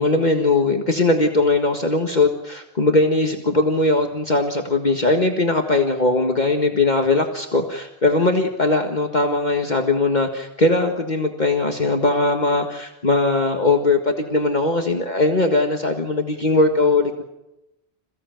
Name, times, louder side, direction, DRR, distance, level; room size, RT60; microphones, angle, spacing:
voice 1, 0.0-17.2, left 2 dB, 40° left, 4 dB, 1.8 m, -20 dB
27.5 x 16.5 x 9.2 m, 0.89 s
omnidirectional pair, 1.1 m